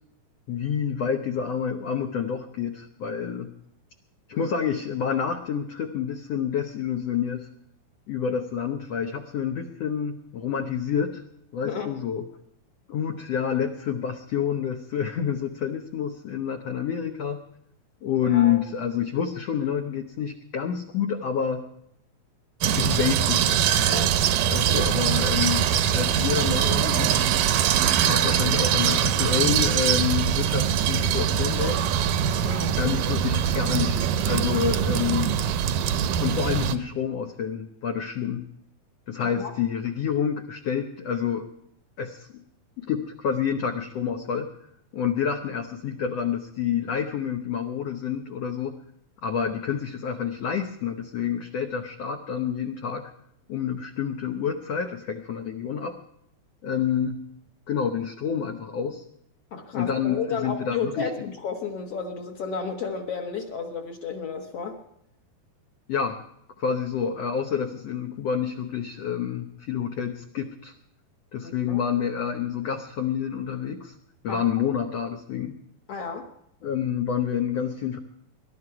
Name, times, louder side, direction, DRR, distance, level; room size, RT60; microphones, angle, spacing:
voice 1, 0.5-3.5 4.3-7.5 8.1-11.2 11.5-12.2 12.9-17.4 18.0-21.6 22.7-24.1 24.5-27.4 28.0-31.8 32.7-35.4 36.2-38.4 39.1-41.5 42.0-42.4 42.8-44.5 44.9-48.7 49.2-53.0 53.5-56.0 56.6-57.2 57.7-59.0 59.7-61.3 65.9-66.2 66.6-70.7 71.3-73.9 74.2-75.6 76.6-78.0, left 7 dB, 75° left, 5 dB, 1.5 m, -28 dB
voice 2, 11.6-12.0 18.2-18.6 32.4-32.8 39.2-39.5 59.5-64.8 71.4-71.8 74.3-74.4 75.9-76.3, left 5 dB, 55° left, 4 dB, 1.8 m, -32 dB
sound 1, 22.6-36.8, right 9 dB, 75° right, 2.2 m, -23 dB
21.5 x 11.5 x 4.8 m, 0.76 s
omnidirectional pair, 4.2 m